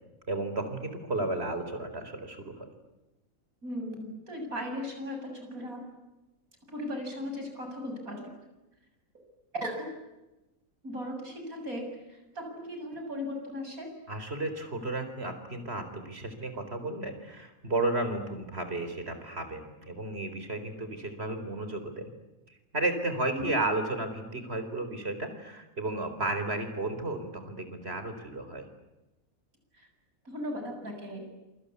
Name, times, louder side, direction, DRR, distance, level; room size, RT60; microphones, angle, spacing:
voice 1, 0.3-2.7 14.1-22.1 22.7-28.7, right 2 dB, 45° right, 8 dB, 4.6 m, -33 dB
voice 2, 3.6-5.8 6.7-8.3 9.6-9.9 10.8-13.9 23.3-23.6 29.7-29.9 30.2-31.2, left 1 dB, 80° right, 3 dB, 8.1 m, -37 dB
28.0 x 25.0 x 8.5 m, 1.0 s
omnidirectional pair, 1.5 m